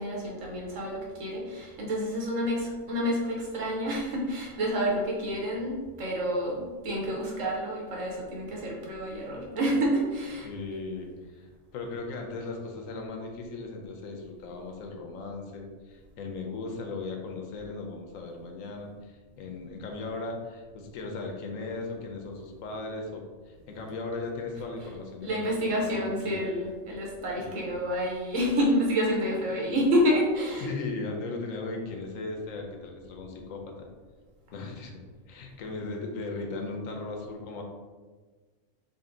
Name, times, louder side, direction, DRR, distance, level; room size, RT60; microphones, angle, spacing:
voice 1, 0.0-10.5 25.2-30.7, equal, 75° right, -2 dB, 1.3 m, -28 dB
voice 2, 10.4-11.5 11.7-26.4 27.4-27.8 30.6-33.9 34.5-37.6, left 3 dB, 85° left, 2 dB, 1.0 m, -37 dB
4.0 x 2.1 x 3.8 m, 1.4 s
omnidirectional pair, 1.3 m